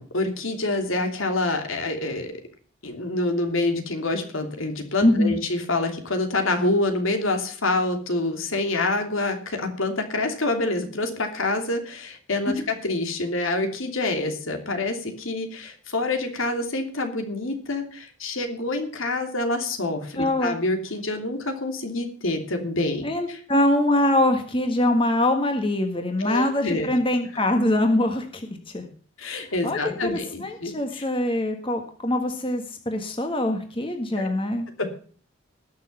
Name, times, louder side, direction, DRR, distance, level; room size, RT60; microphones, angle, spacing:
voice 1, 0.0-2.3 2.8-23.4 26.2-26.9 29.2-31.0 34.2-34.3 34.8-34.9, left 2 dB, 75° left, 5 dB, 3.0 m, -27 dB
voice 2, 5.0-5.4 12.5-12.6 20.2-20.6 23.0-28.9 29.4-34.7, left 1 dB, 25° left, 5 dB, 1.6 m, -23 dB
20.0 x 6.7 x 5.5 m, 0.43 s
head